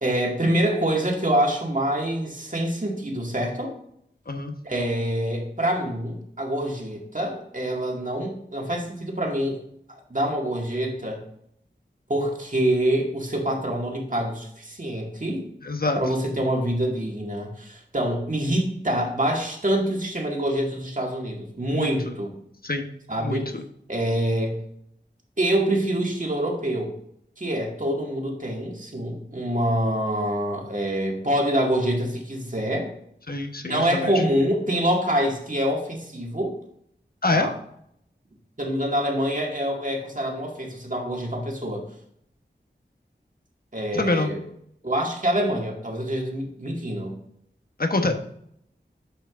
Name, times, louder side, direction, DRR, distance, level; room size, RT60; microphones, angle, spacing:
voice 1, 0.0-3.7 4.6-9.6 9.9-11.2 12.1-15.5 16.0-22.3 23.1-23.5 23.9-24.6 25.4-26.9 27.4-32.9 33.7-36.6 37.3-37.5 38.6-41.8 43.7-44.4 44.8-47.2, right 1 dB, 45° right, 0 dB, 2.0 m, -26 dB
voice 2, 15.6-16.0 21.7-21.9 22.6-22.9 23.2-23.6 33.3-34.1 37.2-37.5 43.9-44.3 47.8-48.1, left 2 dB, 50° left, 5 dB, 1.1 m, -25 dB
8.8 x 5.8 x 2.5 m, 0.71 s
wide cardioid pair, 45°, 19 cm